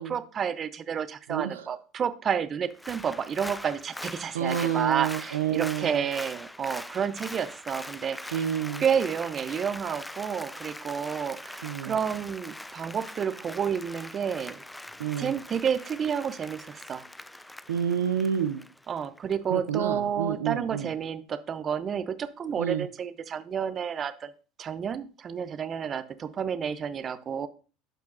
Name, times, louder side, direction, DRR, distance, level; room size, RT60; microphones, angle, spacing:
voice 1, 0.0-8.5 8.8-14.6 15.2-17.1 18.9-24.3 24.6-27.5, right 7 dB, 40° right, 13 dB, 0.6 m, -30 dB
voice 2, 1.3-1.7 4.3-6.0 8.3-8.8 11.6-11.9 15.0-15.3 17.7-18.7 19.5-20.9 22.6-22.9, right 9 dB, 85° right, 10 dB, 0.4 m, -29 dB
Applause, 2.7-19.3 19.7-19.8, left 1 dB, 5° left, 0.3 m, -42 dB
12.0 x 4.6 x 2.5 m, 0.36 s
hypercardioid pair, 75°, 0 cm